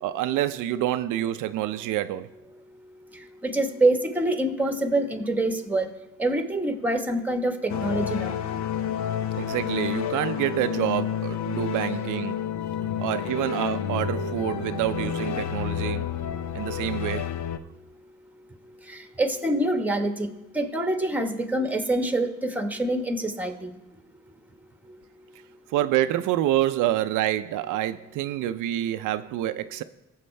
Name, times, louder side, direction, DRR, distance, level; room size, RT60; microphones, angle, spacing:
voice 1, 0.0-2.3 9.3-12.4 13.0-16.1 16.5-17.3 25.7-29.8, right 13 dB, 90° right, 0.5 m, -27 dB
voice 2, 3.4-5.9 6.2-8.4 18.9-20.3 20.5-23.7, right 1 dB, 5° right, 1.2 m, -25 dB
sound 1, 7.7-17.6, left 8 dB, 65° left, 0.7 m, -30 dB
19.0 x 7.4 x 3.3 m
cardioid pair, 90°, 30 cm